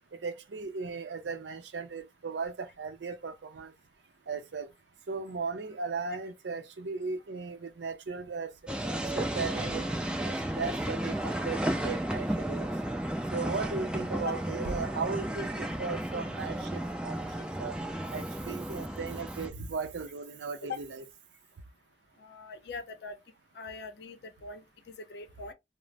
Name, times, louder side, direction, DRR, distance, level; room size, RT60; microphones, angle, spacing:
voice 1, 0.2-3.7 4.3-4.7 5.1-8.5 9.1-12.7 13.3-17.3 17.6-17.8 18.1-21.0, right 4 dB, 90° right, 0.5 m, -37 dB
sound 1, 8.7-19.5, right 1 dB, 5° right, 0.3 m, -33 dB
voice 2, 22.2-23.2 23.5-25.5, left 4 dB, 70° left, 0.5 m, -42 dB
2.5 x 2.0 x 3.2 m
head